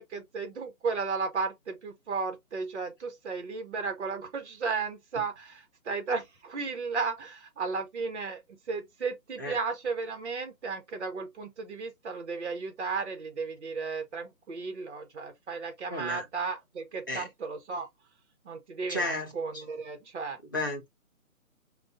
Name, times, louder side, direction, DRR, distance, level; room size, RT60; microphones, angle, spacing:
voice 1, 0.0-17.9 18.4-20.4, right 4 dB, 50° right, 1.3 m, -34 dB
voice 2, 15.9-16.2 17.1-17.3 18.9-19.3 20.5-20.9, left 1 dB, 15° left, 0.5 m, -32 dB
5.1 x 2.5 x 2.5 m
figure-of-eight pair, 150°, 43 cm